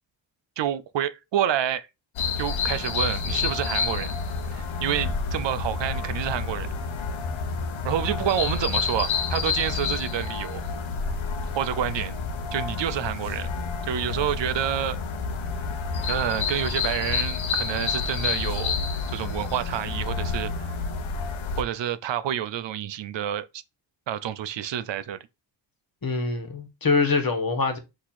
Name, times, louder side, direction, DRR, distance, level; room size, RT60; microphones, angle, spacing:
voice 1, 0.6-1.9 2.4-4.1 4.5-6.7 7.8-10.6 11.4-12.2 12.5-13.5 13.9-15.0 16.1-18.7 19.1-20.8 21.6-23.6 24.1-25.2, right 10 dB, 65° right, 0.5 m, -28 dB
sound 1, 2.2-21.6, left 5 dB, 75° left, 0.8 m, -29 dB
voice 2, 26.0-27.8, left 4 dB, 45° left, 1.3 m, -24 dB
4.4 x 2.9 x 4.1 m
cardioid pair, 65°, 47 cm